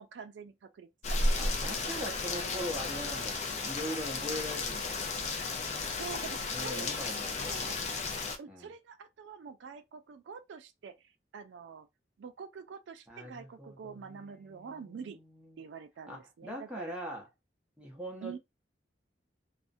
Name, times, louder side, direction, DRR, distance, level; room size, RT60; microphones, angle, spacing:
voice 1, 0.0-1.5 2.0-3.2 6.0-7.0 7.4-8.0 8.4-11.9 12.2-15.2 15.6-16.9 18.2-18.4, right 6 dB, 85° right, 0.4 m, -46 dB
Rain, 1.0-8.4, left 3 dB, 40° left, 0.4 m, -33 dB
voice 2, 1.0-5.0 6.5-7.9 8.5-8.7 13.1-15.6 16.1-17.3 17.8-18.4, equal, 5° right, 0.7 m, -42 dB
2.4 x 2.1 x 2.5 m
head